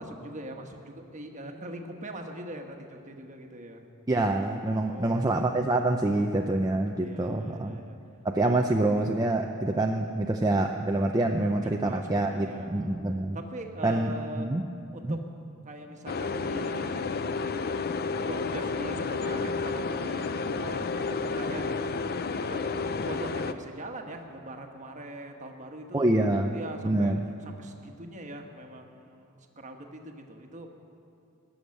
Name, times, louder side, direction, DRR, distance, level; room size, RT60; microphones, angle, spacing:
voice 1, 0.0-3.9 4.5-5.2 6.1-6.3 7.0-8.0 11.6-12.9 13.3-14.5 14.9-15.2 15.6-17.1 18.2-27.2 27.4-30.7, right 1 dB, 35° right, 3 dB, 1.3 m, -42 dB
voice 2, 4.1-7.8 8.2-13.4 13.8-14.6 15.0-15.2 25.9-26.5 26.8-27.2, right 2 dB, 15° right, 2 dB, 0.5 m, -26 dB
sound 1, 16.1-23.5, left 4 dB, 45° left, 0.5 m, -31 dB
19.0 x 7.2 x 9.6 m, 2.6 s
head